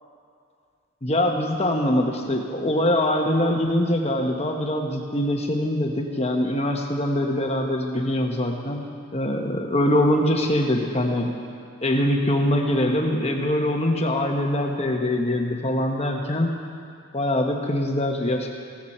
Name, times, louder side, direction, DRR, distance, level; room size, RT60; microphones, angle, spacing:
voice 1, 1.0-11.3 11.8-16.6 17.1-18.5, left 1 dB, 30° left, 2 dB, 1.1 m, -23 dB
15.5 x 13.5 x 4.4 m, 2.4 s
head